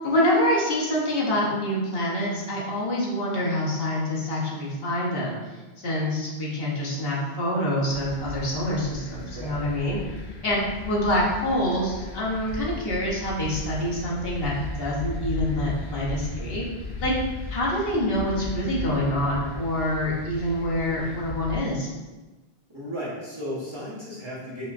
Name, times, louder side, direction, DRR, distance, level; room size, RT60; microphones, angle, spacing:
voice 1, 0.0-5.4 5.8-10.0 10.4-10.6 10.9-16.6 17.0-17.1 17.5-21.9, left 1 dB, 70° left, -5 dB, 1.2 m, -26 dB
sound 1, 7.9-21.6, left 2 dB, 90° left, 0.9 m, -36 dB
voice 2, 22.7-24.7, equal, 30° right, -9 dB, 1.2 m, -34 dB
5.4 x 3.0 x 2.5 m, 1.2 s
omnidirectional pair, 1.0 m